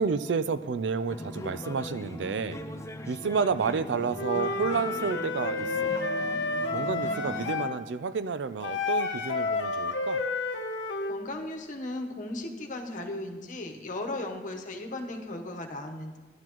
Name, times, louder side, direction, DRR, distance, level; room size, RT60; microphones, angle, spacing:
voice 1, 0.0-2.6 3.1-5.9 6.7-10.2, right 5 dB, 85° right, 13 dB, 0.4 m, -30 dB
sound 1, 1.1-7.7, left 1 dB, 15° left, 0.5 m, -40 dB
Wind instrument woodwind instrument, 4.1-7.8 8.6-11.2, left 3 dB, 85° left, 0.8 m, -30 dB
voice 2, 11.1-16.2, left 2 dB, 45° left, 3 dB, 1.1 m, -36 dB
13.5 x 11.0 x 3.0 m, 1.3 s
head